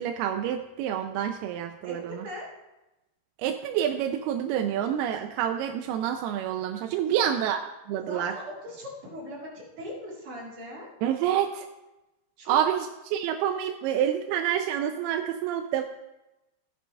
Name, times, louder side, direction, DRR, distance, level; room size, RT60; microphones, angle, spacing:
voice 1, 0.0-2.2 3.4-7.6 7.9-8.3 11.0-11.7 12.5-12.9 13.1-15.8, right 10 dB, 85° right, 5 dB, 2.6 m, -27 dB
voice 2, 1.8-2.5 7.0-7.4 8.1-10.9 12.4-12.8, left 1 dB, 55° right, -5 dB, 5.0 m, -39 dB
15.5 x 10.5 x 3.3 m, 0.98 s
omnidirectional pair, 4.5 m